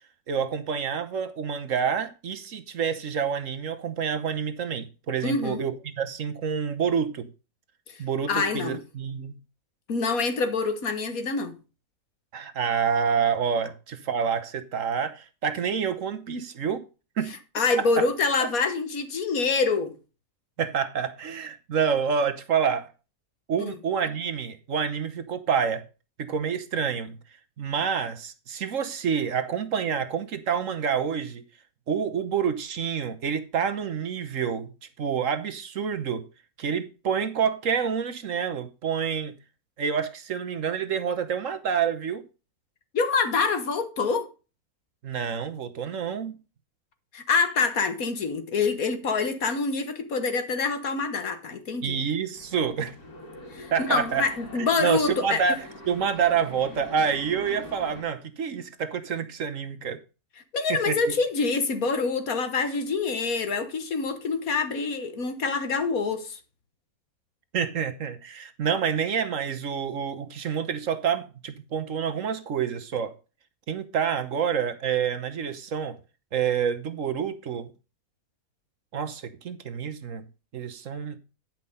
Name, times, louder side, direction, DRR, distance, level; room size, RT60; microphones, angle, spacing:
voice 1, 0.3-7.3 8.0-9.4 12.3-16.8 17.2-17.4 17.8-17.9 20.6-22.9 23.5-25.8 26.2-27.2 27.6-31.4 31.9-34.7 35.0-36.2 36.6-39.3 39.8-42.2 45.0-46.3 51.8-52.9 53.7-54.2 54.8-60.0 60.7-61.0 67.5-73.1 73.7-76.0 76.3-77.7 78.9-80.2 80.5-81.2, right 7 dB, 60° right, 1.3 m, -28 dB
voice 2, 5.2-5.6 7.9-8.8 9.9-11.6 17.6-19.9 23.6-23.8 42.9-44.3 47.1-52.0 53.5-55.4 60.5-66.4, left 4 dB, 70° left, 1.9 m, -26 dB
sound 1, 52.3-58.0, left 2 dB, 85° left, 3.2 m, -44 dB
10.5 x 5.7 x 5.4 m
omnidirectional pair, 1.6 m